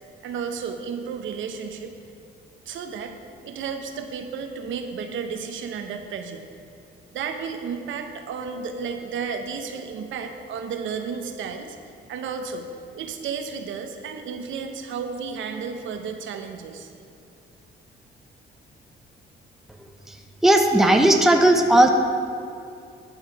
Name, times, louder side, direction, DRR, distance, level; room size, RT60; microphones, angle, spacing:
voice 1, 0.2-1.9 2.7-3.1 3.4-6.5 7.1-11.8 12.1-12.7 12.9-16.9, right 6 dB, 80° right, 6 dB, 0.9 m, -32 dB
voice 2, 20.4-21.9, right 1 dB, ahead, 3 dB, 0.8 m, -16 dB
11.5 x 6.5 x 4.7 m, 2.5 s
cardioid pair, 90°, 20 cm